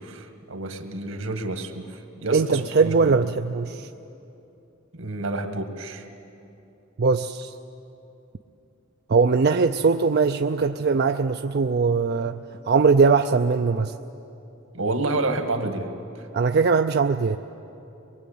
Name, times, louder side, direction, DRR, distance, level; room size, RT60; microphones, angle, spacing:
voice 1, 0.0-3.2 4.9-6.1 14.7-16.3, right 2 dB, 80° right, 6 dB, 2.0 m, -29 dB
voice 2, 2.3-3.9 7.0-7.5 9.1-14.0 16.3-17.4, right 4 dB, 50° right, 7 dB, 0.5 m, -21 dB
23.5 x 22.0 x 8.6 m, 2.8 s
head